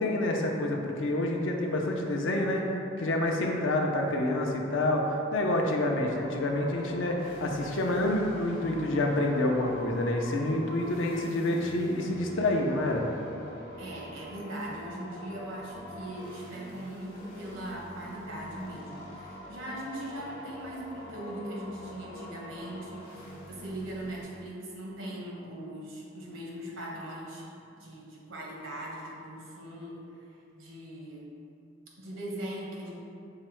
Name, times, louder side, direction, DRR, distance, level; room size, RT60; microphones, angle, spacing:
voice 1, 0.0-2.6 3.0-13.1, left 1 dB, 70° left, 1 dB, 0.5 m, -28 dB
sound 1, 5.9-24.2, left 1 dB, 50° left, 1.0 m, -45 dB
voice 2, 13.8-30.3 30.5-31.3 32.0-33.0, right 1 dB, 75° right, -3 dB, 0.9 m, -40 dB
5.6 x 2.1 x 4.4 m, 2.7 s
head